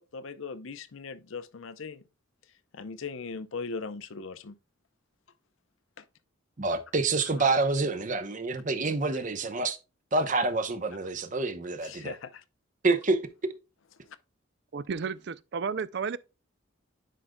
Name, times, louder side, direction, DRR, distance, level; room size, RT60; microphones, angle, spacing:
voice 1, 0.0-2.0 2.7-4.6 6.0-6.1 7.4-7.5 11.8-12.4 14.1-14.2, left 4 dB, 75° left, 0.6 m, -39 dB
voice 2, 6.6-9.8 10.1-12.1 12.8-13.2, right 3 dB, 40° right, 0.8 m, -27 dB
voice 3, 14.7-16.2, right 5 dB, 55° right, 0.4 m, -32 dB
10.0 x 5.0 x 2.2 m
head